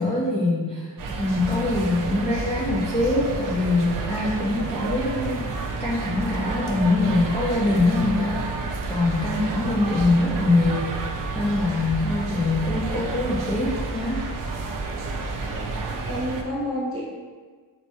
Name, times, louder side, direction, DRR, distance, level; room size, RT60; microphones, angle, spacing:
voice 1, 0.0-8.5 8.9-14.3, left 2 dB, 15° left, -7 dB, 0.4 m, -24 dB
sound 1, 1.0-16.4, right 3 dB, 50° right, 0.5 m, -30 dB
voice 2, 15.4-17.0, equal, 30° right, -5 dB, 1.0 m, -30 dB
4.4 x 2.1 x 2.8 m, 1.5 s
wide cardioid pair, 130°, 43 cm